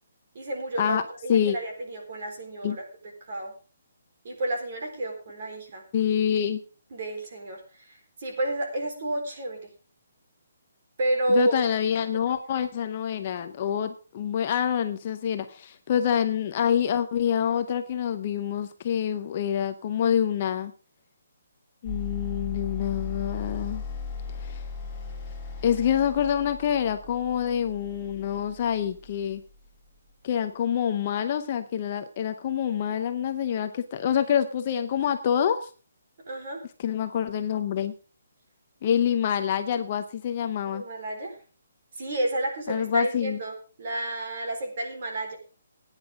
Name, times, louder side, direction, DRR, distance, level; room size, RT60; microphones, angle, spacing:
voice 1, 0.3-2.8 3.3-3.5 4.2-5.8 6.9-9.7 11.0-11.5 36.3-36.6 40.6-41.4 41.9-45.4, right 1 dB, 35° right, 2 dB, 4.0 m, -30 dB
voice 2, 5.9-6.6 11.3-20.7 21.8-23.8 24.4-24.6 25.6-29.4 30.2-35.7 36.8-37.9 38.8-40.8 42.7-43.4, left 9 dB, 25° left, 8 dB, 0.7 m, -26 dB
sound 1, 21.9-30.0, left 4 dB, 5° left, 1.8 m, -37 dB
16.5 x 9.8 x 3.6 m, 0.36 s
hypercardioid pair, 180°, 0 cm